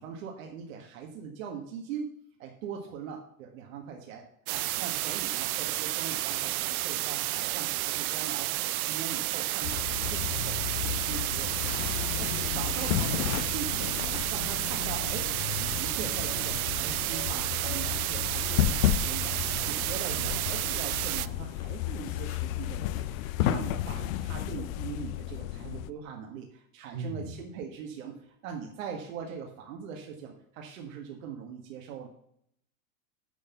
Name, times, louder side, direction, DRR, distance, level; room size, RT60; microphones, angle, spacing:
voice 1, 0.0-2.1 2.4-4.2 4.5-11.9 12.2-15.3 15.6-32.1, right 7 dB, 70° right, 1 dB, 1.6 m, -41 dB
sound 1, 4.5-21.3, right 17 dB, 85° right, 0.6 m, -31 dB
sound 2, 9.6-25.9, left 12 dB, 70° left, 0.6 m, -33 dB
voice 2, 26.9-27.4, right 3 dB, 45° right, 3 dB, 2.4 m, -38 dB
10.0 x 4.1 x 6.9 m, 0.69 s
supercardioid pair, 165°, 42 cm